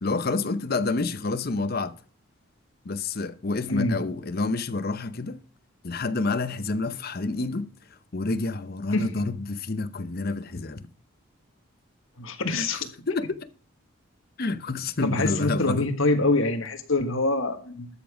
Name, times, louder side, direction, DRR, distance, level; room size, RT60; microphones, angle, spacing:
voice 1, 0.0-1.9 2.8-5.4 5.8-7.7 8.1-10.9 12.5-12.7 13.1-13.5 14.4-15.9, left 3 dB, 45° left, 0.7 m, -28 dB
voice 2, 3.7-4.0 8.9-9.1 12.2-12.9 15.0-17.9, left 2 dB, 70° left, 1.5 m, -25 dB
13.0 x 7.2 x 5.0 m
head